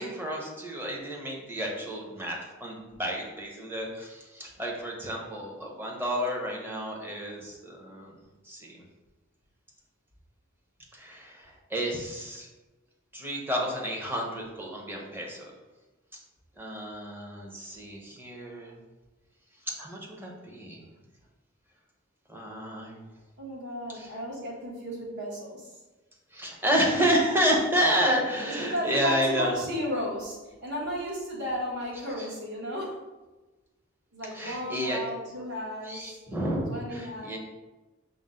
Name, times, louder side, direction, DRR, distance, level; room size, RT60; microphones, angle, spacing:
voice 1, 0.0-8.1 8.4-8.8 10.9-12.5 13.1-15.5 16.6-18.8 19.6-20.8 22.3-23.1 23.9-24.2 26.3-29.6 32.2-32.3 34.3-35.0 35.8-37.4, equal, 10° right, -1 dB, 0.6 m, -30 dB
voice 2, 23.4-25.7 28.5-33.0 34.1-36.2 36.7-37.4, equal, 55° right, -4 dB, 1.1 m, -34 dB
5.3 x 2.1 x 3.6 m, 1.2 s
head